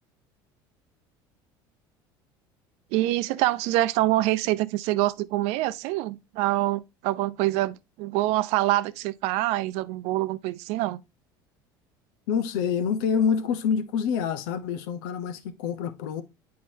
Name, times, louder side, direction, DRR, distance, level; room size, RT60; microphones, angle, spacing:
voice 1, 2.9-11.0, right 16 dB, 70° right, 0.5 m, -25 dB
voice 2, 12.3-16.2, left 7 dB, 80° left, 0.8 m, -27 dB
8.4 x 4.7 x 2.7 m
supercardioid pair, 90°, 12 cm